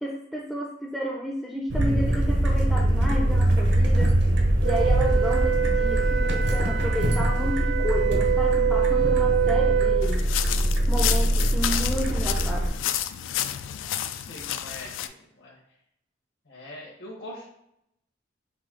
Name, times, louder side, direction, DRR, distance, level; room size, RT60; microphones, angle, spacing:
voice 1, 0.0-4.2 4.6-10.3 10.9-12.8, equal, ahead, -1 dB, 0.4 m, -32 dB
sound 1, 1.7-12.7, right 1 dB, 65° right, 0.8 m, -23 dB
Wind instrument woodwind instrument, 4.6-10.1, right 10 dB, 80° right, 0.4 m, -26 dB
Footsteps Dry Leaves A, 10.0-15.1, left 11 dB, 85° left, 0.3 m, -30 dB
voice 2, 14.1-15.0 15.4-15.6 16.4-17.5, left 1 dB, 65° left, -6 dB, 1.1 m, -42 dB
5.0 x 2.7 x 3.7 m, 0.79 s
head